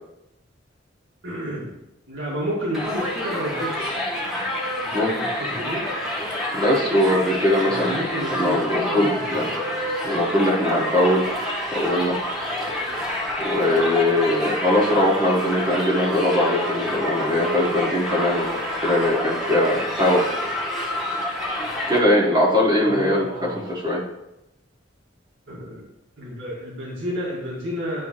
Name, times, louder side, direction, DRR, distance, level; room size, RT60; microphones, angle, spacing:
voice 1, 1.2-1.7 2.1-4.0 4.8-5.8 7.6-9.3 22.8-23.7 25.5-25.8 26.2-28.1, equal, 75° right, -5 dB, 1.7 m, -30 dB
Crowd, 2.7-22.0, left 1 dB, ahead, 1.3 m, -28 dB
voice 2, 6.5-9.5 10.0-11.2 11.7-12.2 13.4-18.5 18.8-20.3 21.9-24.0, left 1 dB, 20° right, -5 dB, 1.2 m, -21 dB
10.5 x 3.5 x 3.0 m, 0.89 s
head